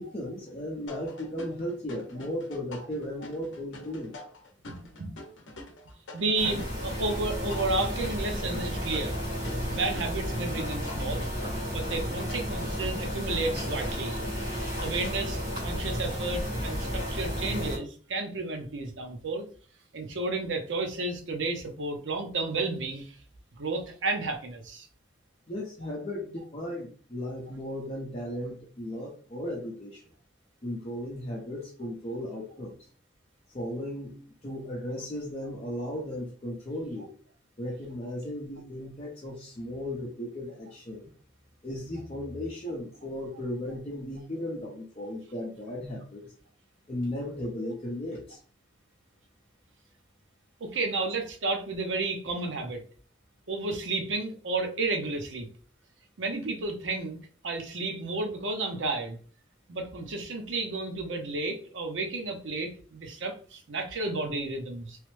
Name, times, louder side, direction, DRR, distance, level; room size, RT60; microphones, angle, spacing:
voice 1, 0.0-4.1 25.5-30.0 30.6-32.9 33.5-37.1 37.6-41.1 41.6-46.3 46.9-48.4, left 1 dB, 35° left, -3 dB, 0.6 m, -36 dB
sound 1, 0.9-13.9, left 2 dB, 85° left, 0.7 m, -47 dB
voice 2, 4.6-5.1 6.1-9.2 9.7-11.2 11.7-14.2 14.8-19.5 19.9-23.2 23.6-24.9 50.6-52.8 53.5-55.5 56.2-57.2 57.4-59.2 59.7-65.0, right 3 dB, 85° right, 4 dB, 0.7 m, -32 dB
sound 2, 6.3-17.8, equal, 60° right, 1.4 m, -32 dB
3.1 x 2.0 x 3.1 m, 0.43 s
head